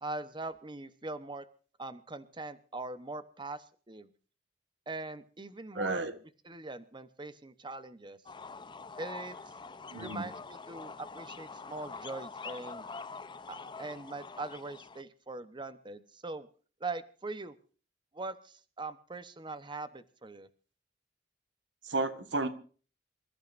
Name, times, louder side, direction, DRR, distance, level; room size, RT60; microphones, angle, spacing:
voice 1, 0.0-1.5 1.8-4.1 4.9-6.1 6.4-8.2 9.0-9.4 10.0-12.9 13.5-16.5 16.8-17.6 18.1-20.5, right 3 dB, 25° right, 1.0 m, -41 dB
voice 2, 5.7-6.2 9.9-10.3 21.8-22.5, right 2 dB, 90° right, 1.6 m, -32 dB
sound 1, 8.3-15.0, left 4 dB, 25° left, 0.7 m, -45 dB
27.5 x 14.0 x 2.6 m
head